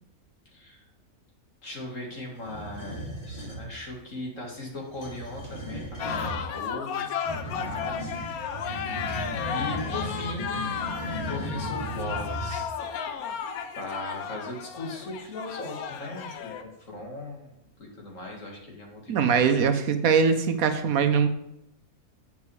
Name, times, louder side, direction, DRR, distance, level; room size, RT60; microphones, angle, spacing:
voice 1, 0.5-0.8 1.6-7.0 7.3-8.8 9.5-10.7 11.1-12.8 13.7-19.7, left 2 dB, 60° left, -1 dB, 2.4 m, -38 dB
sound 1, 2.4-3.7 4.8-6.4 7.2-12.7, equal, 35° left, 3.2 m, -36 dB
sound 2, 6.0-16.6, left 7 dB, 80° left, 1.2 m, -34 dB
voice 2, 19.1-21.3, right 6 dB, 75° right, 9 dB, 1.2 m, -22 dB
8.4 x 5.9 x 4.9 m, 0.81 s
omnidirectional pair, 1.5 m